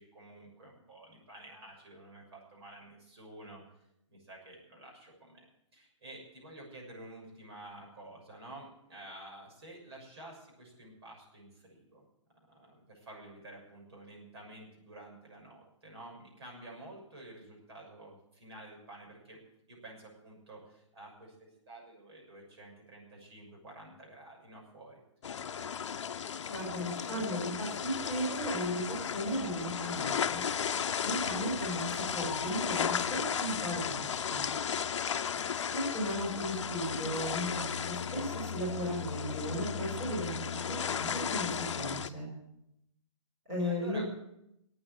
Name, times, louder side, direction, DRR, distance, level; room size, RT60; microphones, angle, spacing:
voice 1, 0.0-3.6 4.1-12.0 12.5-19.4 19.7-25.0 35.0-35.8 43.6-44.1, right 1 dB, 55° right, -1 dB, 6.6 m, -50 dB
sound 1, 25.2-42.1, left 7 dB, 65° left, 0.7 m, -35 dB
voice 2, 26.5-30.4 31.0-34.4 35.7-40.3 40.6-42.3 43.5-44.0, equal, 15° right, -6 dB, 5.0 m, -36 dB
13.0 x 8.7 x 9.6 m, 0.81 s
hypercardioid pair, 180°, 16 cm